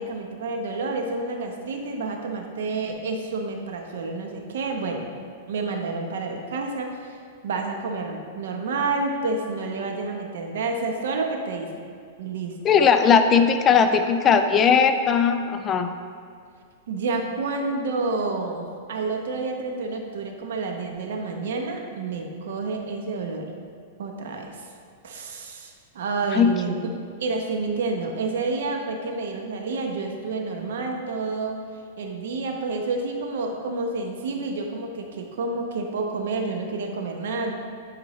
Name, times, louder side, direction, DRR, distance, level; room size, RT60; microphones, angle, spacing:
voice 1, 0.0-5.1 5.5-7.2 7.4-11.7 12.2-12.5 16.9-23.5 24.0-24.6 25.0-26.8 27.2-31.6 32.0-37.5, right 3 dB, 75° right, 3 dB, 0.9 m, -29 dB
voice 2, 12.6-15.9 26.3-26.5, left 6 dB, 20° left, 8 dB, 0.3 m, -18 dB
9.5 x 4.4 x 3.1 m, 2.2 s
supercardioid pair, 160°, 0 cm